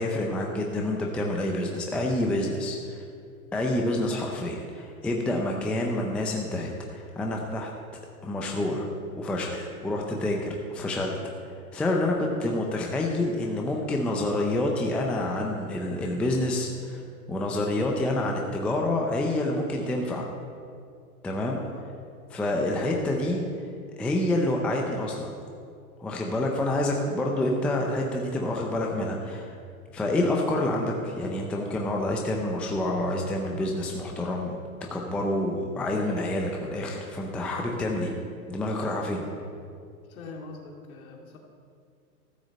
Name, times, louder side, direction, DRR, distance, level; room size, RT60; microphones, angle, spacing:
voice 1, 0.0-3.0 3.5-7.7 8.2-8.9 9.2-11.2 11.7-17.0 17.3-20.3 21.2-21.6 22.3-23.4 24.0-25.3 26.0-29.5 29.9-34.6 34.9-38.1 38.5-39.2, left 1 dB, 5° left, 0 dB, 0.4 m, -28 dB
voice 2, 21.6-21.9 39.1-39.4 40.1-41.4, left 3 dB, 70° left, 0 dB, 2.5 m, -44 dB
13.0 x 6.3 x 7.4 m, 2.3 s
hypercardioid pair, 135°, 44 cm